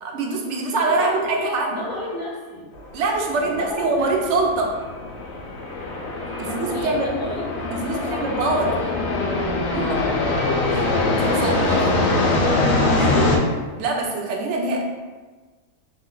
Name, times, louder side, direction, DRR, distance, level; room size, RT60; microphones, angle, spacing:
voice 1, 0.0-1.8 2.9-4.8 6.4-7.1 7.7-8.7 9.7-10.0 10.7-11.8 13.0-13.3 13.8-14.8, right 3 dB, 65° right, 0 dB, 0.8 m, -24 dB
voice 2, 0.9-2.7 3.4-4.1 6.4-7.4 7.9-8.9 11.4-12.2, left 1 dB, 20° left, -8 dB, 0.7 m, -32 dB
sound 1, 2.8-13.4, left 2 dB, 80° left, 1.0 m, -23 dB
2.9 x 2.1 x 3.7 m, 1.3 s
omnidirectional pair, 1.4 m